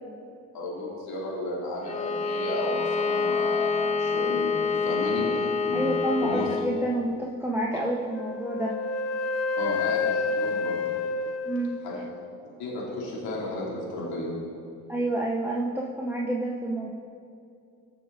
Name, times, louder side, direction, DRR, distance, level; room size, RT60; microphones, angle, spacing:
voice 1, 0.5-4.6 4.8-5.9 6.2-6.5 9.6-10.8 11.8-12.0 12.6-14.3, left 2 dB, 75° left, -4 dB, 3.3 m, -33 dB
Bowed string instrument, 1.8-6.7, left 4 dB, 15° left, 1.3 m, -27 dB
voice 2, 5.7-8.7 11.4-11.8 14.9-16.9, right 1 dB, 5° right, -3 dB, 1.2 m, -29 dB
Wind instrument woodwind instrument, 8.1-12.3, left 4 dB, 40° left, 0.6 m, -29 dB
20.0 x 6.8 x 4.1 m, 2.5 s
supercardioid pair, 85°, 37 cm